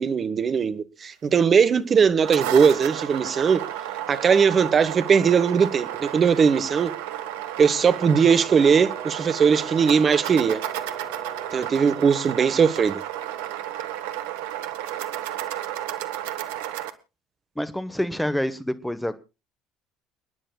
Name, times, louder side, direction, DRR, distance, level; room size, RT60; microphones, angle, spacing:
voice 1, 0.0-3.6 4.1-6.9 7.6-10.6 11.5-13.0, right 6 dB, 40° right, 1.2 m, -19 dB
sound 1, 2.0-16.9, right 12 dB, 75° right, 0.9 m, -32 dB
Brass instrument, 7.6-11.8, right 3 dB, 20° right, 6.3 m, -43 dB
voice 2, 17.6-19.2, equal, 5° left, 1.1 m, -27 dB
30.0 x 10.0 x 2.3 m
hypercardioid pair, 60°, 0 cm